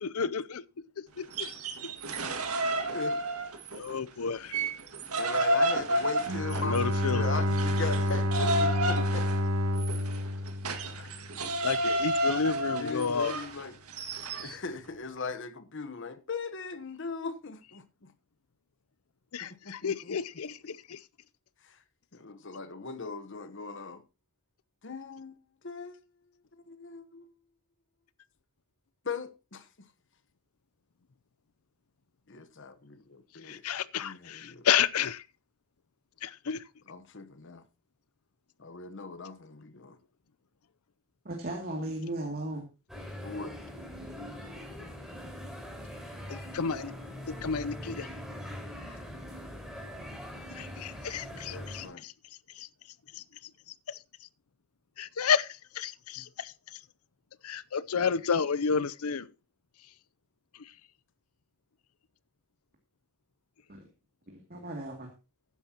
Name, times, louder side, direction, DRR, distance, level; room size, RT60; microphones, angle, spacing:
voice 1, 0.0-0.6 1.0-1.5 3.8-4.6 6.6-7.2 11.6-13.4 19.3-21.0 33.4-35.2 36.2-36.6 46.3-46.9 47.3-48.1 50.5-52.1 52.5-52.7 53.1-53.2 53.9-54.0 55.0-56.8 57.4-59.3 60.6-60.7, left 6 dB, 80° left, 0.6 m, -31 dB
sound 1, 1.2-3.9 4.3-14.5, right 1 dB, 85° right, 1.9 m, -31 dB
voice 2, 5.2-6.8 7.1-9.5 11.0-11.1 12.7-13.8 14.4-18.1 19.4-20.2 21.6-21.8 22.1-24.0 24.8-25.4 25.6-26.0 26.5-27.3 29.0-29.7 32.3-33.6 34.0-34.7 36.9-37.6 38.6-40.0 43.2-43.6 51.5-52.0 56.2-56.3, left 4 dB, 55° left, 1.1 m, -39 dB
Bowed string instrument, 6.2-11.5, left 1 dB, 70° right, 1.4 m, -29 dB
voice 3, 41.2-42.6 64.3-65.1, right 1 dB, 45° right, 2.6 m, -36 dB
sound 2, 42.9-51.9, left 1 dB, ahead, 4.7 m, -42 dB
14.5 x 10.5 x 2.9 m
head